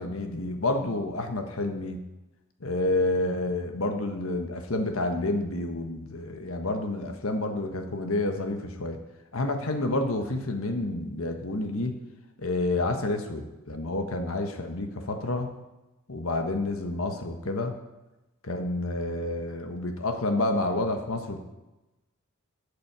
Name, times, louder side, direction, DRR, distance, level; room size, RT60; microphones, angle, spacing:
voice 1, 0.0-2.0 2.6-9.0 9.3-11.9 12.4-15.5 16.1-17.8 18.4-21.4, left 2 dB, 80° left, 5 dB, 1.3 m, -29 dB
14.0 x 8.6 x 4.8 m, 1.0 s
head